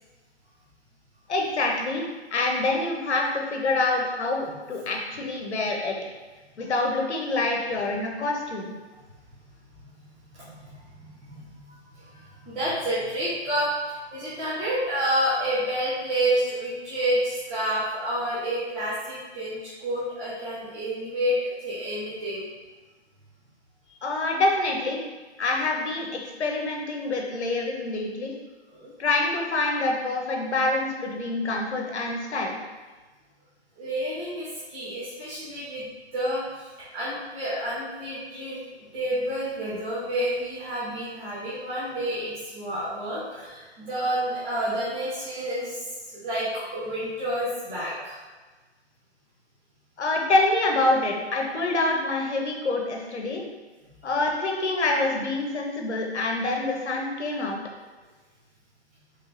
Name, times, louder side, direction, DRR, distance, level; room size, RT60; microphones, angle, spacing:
voice 1, 1.3-2.0 2.3-5.9 6.6-8.7 24.0-25.0 25.4-28.3 29.0-32.6 50.0-53.4 54.0-57.6, left 2 dB, 75° left, 1 dB, 1.0 m, -26 dB
voice 2, 10.3-22.4 28.7-28.9 33.8-35.9 36.1-38.6 38.9-48.2, right 1 dB, 10° right, -13 dB, 0.8 m, -29 dB
3.5 x 3.2 x 3.9 m, 1.3 s
hypercardioid pair, 160°, 34 cm